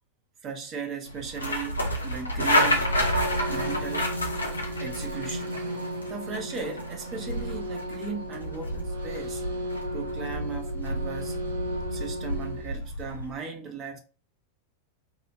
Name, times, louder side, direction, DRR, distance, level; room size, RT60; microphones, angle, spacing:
voice 1, 0.4-2.9 3.5-4.1 4.8-5.6 6.1-9.6 9.9-11.4 11.9-14.0, right 5 dB, 30° right, 0.7 m, -37 dB
sound 1, 1.1-13.3, equal, 80° left, 0.7 m, -30 dB
sound 2, 2.7-12.6, equal, 60° right, 0.8 m, -35 dB
2.8 x 2.8 x 3.0 m
figure-of-eight pair, 90°, 0 cm